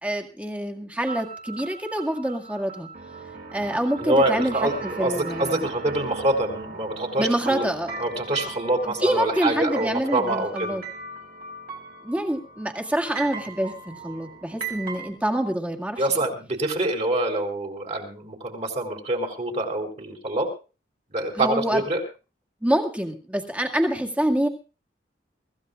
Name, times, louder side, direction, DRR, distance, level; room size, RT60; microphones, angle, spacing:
voice 1, 0.0-2.9 3.5-4.7 5.0-5.7 7.2-7.9 8.8-10.8 12.0-16.2 21.3-21.8 22.6-24.5, right 1 dB, 10° right, 3 dB, 2.0 m, -26 dB
sound 1, 1.1-15.1, right 4 dB, 55° right, 4.4 m, -38 dB
voice 2, 4.0-7.6 8.0-10.8 16.0-20.5 21.1-22.0, right 1 dB, 40° right, 3 dB, 3.8 m, -25 dB
24.0 x 15.5 x 2.5 m, 0.32 s
head